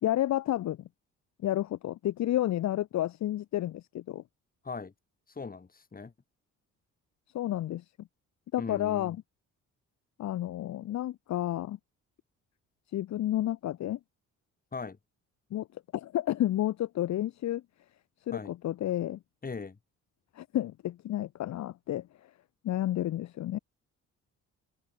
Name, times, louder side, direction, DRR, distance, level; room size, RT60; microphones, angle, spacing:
voice 1, 0.0-0.8 1.4-4.2 7.3-7.8 8.5-9.2 10.2-11.8 12.9-14.0 15.5-15.7 15.9-17.6 18.3-19.2 20.3-22.1 22.6-23.6, left 13 dB, 65° left, 0.9 m, -30 dB
voice 2, 5.4-6.1 8.6-9.2 14.7-15.0 18.3-18.5 19.4-19.8, left 4 dB, 30° left, 3.7 m, -39 dB
cardioid pair, 90°, 30 cm